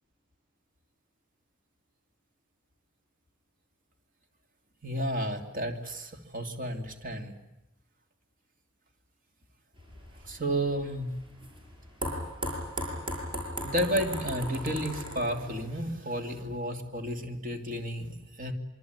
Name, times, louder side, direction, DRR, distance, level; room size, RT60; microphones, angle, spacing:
voice 1, 4.8-7.3 10.2-11.1 13.6-18.5, equal, 40° right, 5 dB, 3.0 m, -32 dB
sound 1, 9.8-15.8, equal, 25° right, 7.0 m, -37 dB
25.5 x 24.0 x 9.6 m, 0.92 s
head